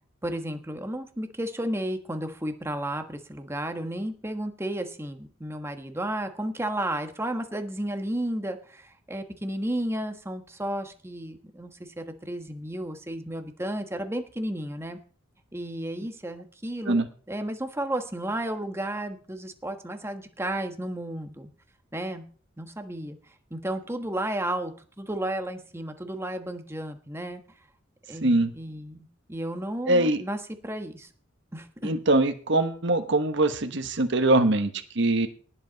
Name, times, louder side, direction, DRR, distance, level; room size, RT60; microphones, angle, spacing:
voice 1, 0.2-15.0 15.5-17.0 17.3-21.5 21.9-22.2 22.6-27.4 28.1-31.1 31.5-31.9, right 1 dB, 15° right, 6 dB, 1.3 m, -33 dB
voice 2, 28.2-28.5 29.9-30.2 31.8-35.3, right 2 dB, 65° right, 6 dB, 1.3 m, -23 dB
18.5 x 7.9 x 4.1 m, 0.41 s
head